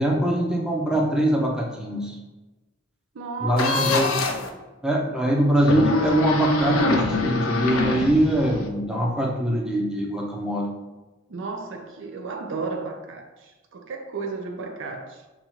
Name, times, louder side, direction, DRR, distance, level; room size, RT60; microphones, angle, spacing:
voice 1, 0.0-2.2 3.4-4.1 4.8-10.7, right 1 dB, 5° right, 0.6 m, -23 dB
voice 2, 3.1-4.1 11.3-15.2, right 4 dB, 65° right, 0.5 m, -33 dB
sound 1, 3.6-4.5 5.6-8.7, left 2 dB, 75° left, 0.5 m, -24 dB
5.5 x 2.4 x 3.0 m
head